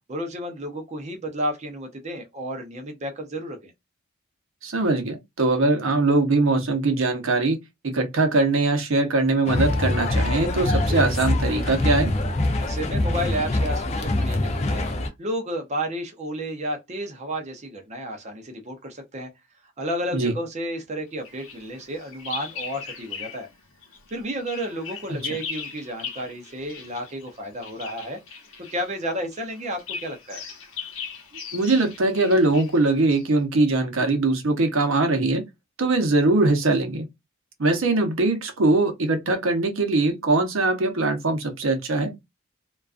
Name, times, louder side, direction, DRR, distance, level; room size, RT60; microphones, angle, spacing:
voice 1, 0.1-3.7 12.6-19.3 19.8-23.5 24.1-28.2 28.6-30.4, equal, 35° right, 0.5 m, -32 dB
voice 2, 4.6-7.6 7.8-12.1 20.1-20.3 25.1-25.2 31.5-35.4 35.8-37.1 37.6-42.1, right 2 dB, 70° right, 0.7 m, -21 dB
sound 1, 9.5-15.1, left 1 dB, 30° left, 0.4 m, -24 dB
Bird vocalization bird call bird song, 21.2-23.5 23.8-33.3, left 6 dB, 75° left, 0.8 m, -39 dB
2.3 x 2.2 x 2.3 m
head